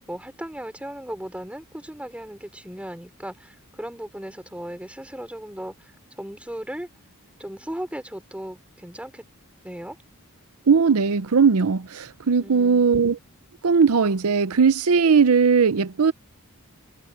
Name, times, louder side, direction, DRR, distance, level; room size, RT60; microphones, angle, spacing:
voice 1, 0.1-5.9 6.2-6.9 7.4-9.2 9.6-10.0 12.4-13.0, equal, 5° right, 3.9 m, -36 dB
voice 2, 10.7-13.2 13.6-16.1, right 5 dB, 80° right, 0.6 m, -18 dB
head